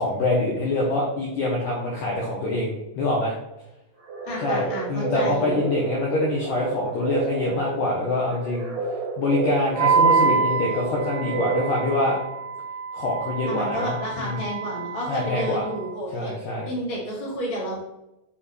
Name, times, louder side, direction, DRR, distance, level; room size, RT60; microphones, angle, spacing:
voice 1, 0.0-3.4 4.4-4.6 4.9-8.8 9.2-12.2 12.9-14.4 15.1-15.6 16.1-16.7, left 2 dB, 75° left, -3 dB, 1.9 m, -25 dB
sound 1, 4.0-12.4, right 3 dB, 55° right, 1.4 m, -31 dB
voice 2, 4.2-5.7 13.5-16.3 16.6-17.8, equal, 25° left, -6 dB, 0.7 m, -31 dB
Wind instrument woodwind instrument, 9.8-15.9, right 5 dB, 85° right, 2.5 m, -26 dB
7.3 x 5.6 x 3.3 m, 0.92 s
omnidirectional pair, 5.2 m